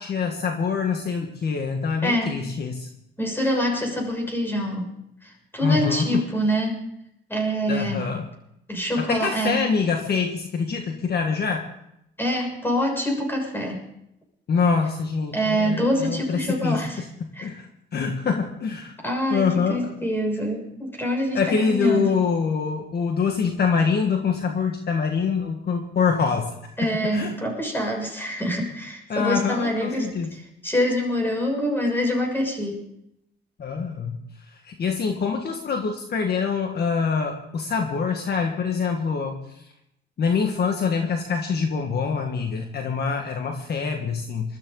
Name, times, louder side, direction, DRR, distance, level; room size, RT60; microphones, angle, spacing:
voice 1, 0.0-2.9 5.6-6.2 7.7-8.2 9.0-11.6 14.5-16.8 17.2-18.9 19.3-19.9 21.3-26.6 27.1-27.3 29.1-30.3 33.6-34.2 34.5-39.6 40.2-44.6, left 5 dB, 55° left, 4 dB, 1.7 m, -25 dB
voice 2, 2.0-2.4 3.2-4.9 5.2-6.8 7.3-8.0 8.7-9.6 12.2-13.8 15.3-17.0 17.3-17.5 19.0-22.1 26.8-32.8, equal, 10° left, 1 dB, 6.6 m, -25 dB
21.0 x 13.5 x 3.9 m, 0.79 s
cardioid pair, 90°, 20 cm